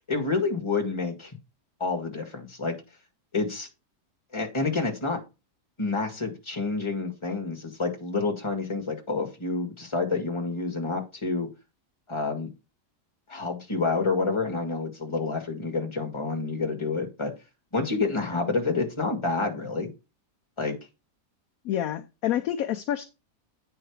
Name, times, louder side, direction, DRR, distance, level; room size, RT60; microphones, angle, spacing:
voice 1, 0.1-1.3 1.8-2.7 3.3-3.7 4.3-5.2 5.8-11.5 12.1-12.5 13.3-17.3 17.7-19.9 20.6-20.7, left 3 dB, 15° left, 3 dB, 1.9 m, -28 dB
voice 2, 21.6-23.1, left 11 dB, 70° left, 10 dB, 0.9 m, -28 dB
8.9 x 4.8 x 4.7 m, 0.28 s
omnidirectional pair, 1.8 m